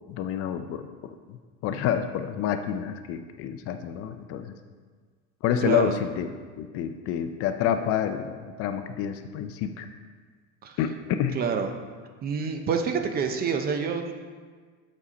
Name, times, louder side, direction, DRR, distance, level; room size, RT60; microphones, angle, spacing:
voice 1, 0.1-4.6 5.4-6.3 6.6-9.9 10.8-11.4, left 9 dB, 45° left, 8 dB, 0.4 m, -28 dB
voice 2, 5.6-6.0 10.6-10.8 11.3-11.7 12.2-14.1, right 6 dB, 30° right, 6 dB, 0.5 m, -27 dB
7.3 x 4.2 x 5.1 m, 1.5 s
cardioid pair, 145°, 34 cm